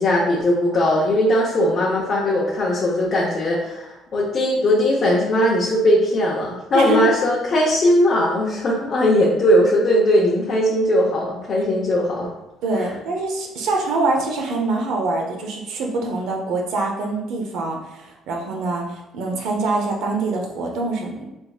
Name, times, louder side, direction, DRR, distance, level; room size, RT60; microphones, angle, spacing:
voice 1, 0.0-12.3, left 1 dB, 45° left, -5 dB, 0.7 m, -19 dB
voice 2, 12.6-21.3, right 3 dB, 75° right, 1 dB, 0.7 m, -24 dB
3.5 x 3.2 x 2.3 m, 0.96 s
cardioid pair, 120°, 0 cm